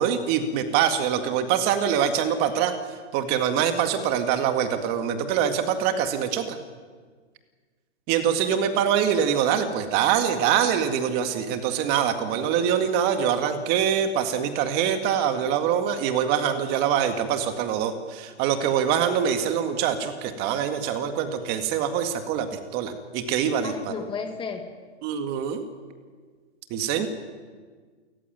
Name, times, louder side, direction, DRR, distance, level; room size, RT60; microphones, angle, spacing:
voice 1, 0.0-2.7 3.1-6.6 8.1-23.9 25.0-25.6 26.7-27.1, right 8 dB, 30° right, 7 dB, 2.0 m, -24 dB
voice 2, 23.6-24.6 27.0-27.1, left 5 dB, 15° left, 6 dB, 1.9 m, -33 dB
28.5 x 15.0 x 9.4 m, 1.5 s
hypercardioid pair, 145°, 34 cm